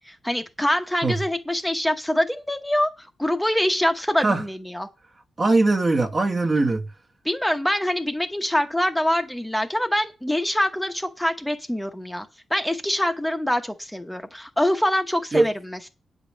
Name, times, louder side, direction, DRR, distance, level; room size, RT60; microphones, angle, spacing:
voice 1, 0.1-4.9 7.2-15.9, left 1 dB, 5° left, 0.9 m, -25 dB
voice 2, 5.4-6.9 15.3-15.5, right 2 dB, 25° right, 1.0 m, -20 dB
9.6 x 5.1 x 7.3 m
wide cardioid pair, 165°, 0 cm